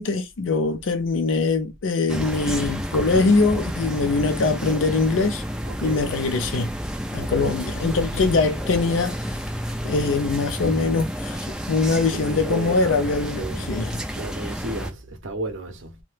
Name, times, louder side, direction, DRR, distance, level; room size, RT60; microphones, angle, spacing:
voice 1, 0.0-5.4 5.8-6.7 7.1-9.4 9.8-14.0, left 3 dB, 70° left, 0.4 m, -23 dB
sound 1, 2.1-14.9, equal, 5° right, 0.4 m, -30 dB
voice 2, 5.6-6.0 7.2-7.6 12.1-13.0 13.3-13.7 14.1-16.0, right 1 dB, 65° right, 0.7 m, -33 dB
2.8 x 2.2 x 3.1 m
head